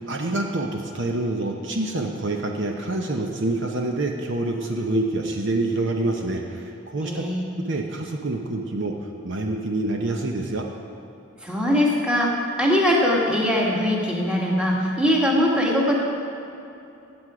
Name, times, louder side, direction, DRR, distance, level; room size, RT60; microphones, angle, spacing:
voice 1, 0.1-7.2 7.7-10.6, right 2 dB, 55° right, 2 dB, 0.8 m, -26 dB
voice 2, 7.0-7.5 11.4-12.3 12.6-16.0, left 1 dB, 5° right, -3 dB, 1.6 m, -21 dB
16.0 x 7.9 x 5.0 m, 2.8 s
head